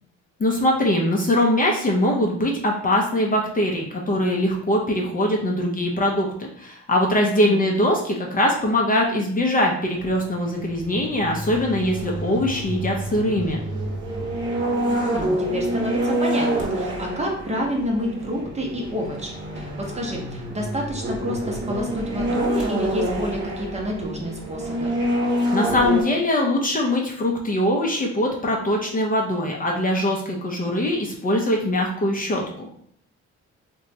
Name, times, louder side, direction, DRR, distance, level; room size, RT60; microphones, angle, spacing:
voice 1, 0.4-13.6 25.5-32.7, left 1 dB, 30° left, -1 dB, 0.5 m, -22 dB
sound 1, 9.9-26.0, right 1 dB, 40° right, 1.0 m, -27 dB
voice 2, 15.0-24.9, equal, 20° right, -1 dB, 0.7 m, -29 dB
2.8 x 2.2 x 2.7 m, 0.63 s
cardioid pair, 90°, 30 cm